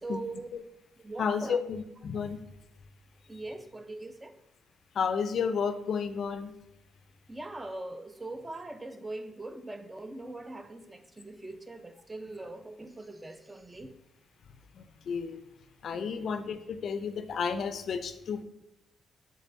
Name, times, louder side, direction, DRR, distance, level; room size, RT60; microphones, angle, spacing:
voice 1, 0.0-0.5 1.0-1.6 3.3-4.3 7.3-13.9 15.9-16.3, right 2 dB, 15° right, 9 dB, 0.3 m, -41 dB
voice 2, 1.2-2.4 4.9-6.5 14.7-15.4 15.8-18.4, left 6 dB, 60° left, 10 dB, 0.3 m, -32 dB
5.4 x 3.3 x 2.5 m, 0.88 s
cardioid pair, 90°, 0 cm